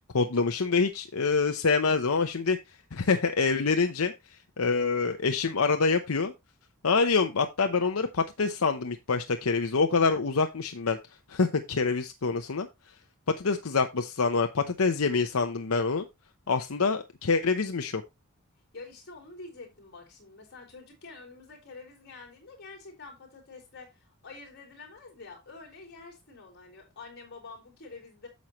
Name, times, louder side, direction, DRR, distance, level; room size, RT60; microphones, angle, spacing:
voice 1, 0.1-2.6 2.9-4.1 4.6-6.3 6.8-11.0 11.3-12.7 13.4-16.0 16.5-18.0, left 4 dB, 85° left, 0.8 m, -26 dB
voice 2, 18.7-28.3, left 3 dB, 50° left, 4.3 m, -47 dB
9.5 x 7.4 x 3.0 m
head